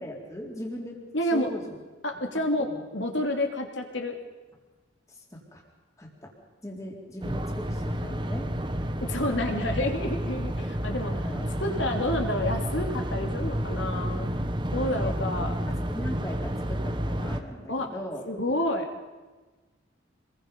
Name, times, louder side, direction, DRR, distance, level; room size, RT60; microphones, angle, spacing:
voice 1, 0.0-1.0 1.3-1.6 2.6-2.8 5.3-5.6 6.0-6.3 6.6-8.5 11.1-12.0 14.9-15.1 15.7-18.2, equal, 15° left, -1 dB, 3.8 m, -39 dB
voice 2, 1.1-1.5 2.0-2.7 2.9-4.2 9.0-11.1 11.6-14.4 14.7-15.6 17.7-17.9 18.3-18.9, left 1 dB, 70° left, 3 dB, 3.0 m, -29 dB
sound 1, 7.2-17.4, equal, 25° right, 1.2 m, -30 dB
27.0 x 22.0 x 5.4 m, 1.3 s
head